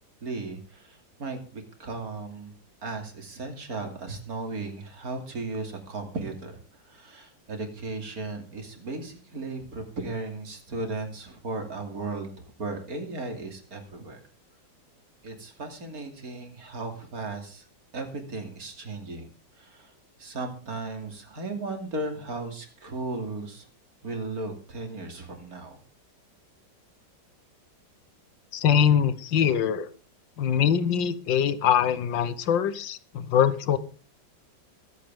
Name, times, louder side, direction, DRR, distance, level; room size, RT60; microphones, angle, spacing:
voice 1, 0.2-2.5 2.8-6.6 6.8-14.2 15.2-17.7 17.9-19.3 19.6-19.9 20.2-23.7 24.0-25.8, right 3 dB, 50° right, 5 dB, 3.1 m, -36 dB
voice 2, 28.5-29.9 30.4-33.8, left 8 dB, 75° left, 14 dB, 1.7 m, -23 dB
22.5 x 8.4 x 3.6 m, 0.37 s
omnidirectional pair, 2.1 m